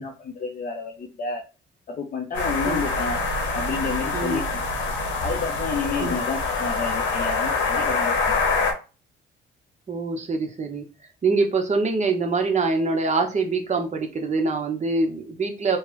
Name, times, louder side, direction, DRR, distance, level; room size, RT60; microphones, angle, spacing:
voice 1, 0.0-1.4 1.9-3.2 3.5-4.6 5.2-8.4, left 4 dB, 45° left, 2 dB, 0.5 m, -30 dB
sound 1, 2.3-8.7, left 3 dB, 75° left, 1.0 m, -25 dB
voice 2, 9.9-10.8 11.2-15.8, right 3 dB, 35° right, 3 dB, 0.8 m, -24 dB
3.3 x 2.1 x 3.0 m, 0.32 s
cardioid pair, 90°, 20 cm